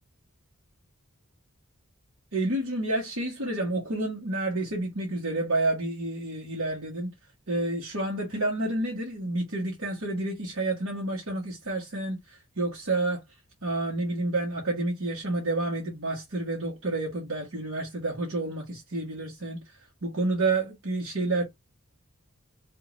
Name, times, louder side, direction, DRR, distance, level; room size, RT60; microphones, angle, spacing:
voice 1, 2.3-7.1 7.5-13.2 13.6-21.4, right 2 dB, 75° right, 1.5 m, -29 dB
5.0 x 2.9 x 2.6 m
head